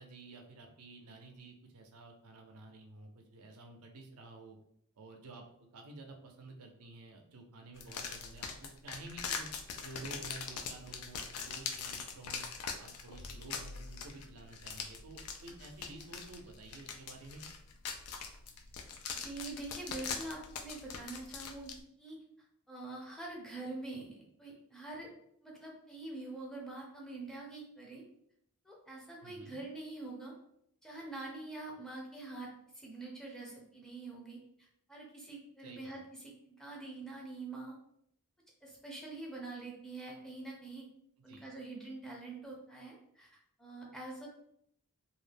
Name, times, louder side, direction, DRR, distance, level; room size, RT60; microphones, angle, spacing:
voice 1, 0.0-4.6 5.0-5.4 5.7-12.4 12.8-17.4 29.2-29.6 35.6-36.0 41.3-41.4, right 2 dB, 75° right, 2 dB, 0.5 m, -51 dB
sound 1, 7.8-21.8, left 5 dB, 70° left, 0.4 m, -42 dB
voice 2, 19.1-22.2 22.7-25.1 25.4-28.0 28.6-30.3 30.8-37.8 38.6-40.9 41.2-44.3, right 2 dB, 5° left, -3 dB, 0.5 m, -45 dB
2.3 x 2.1 x 3.3 m, 0.71 s
head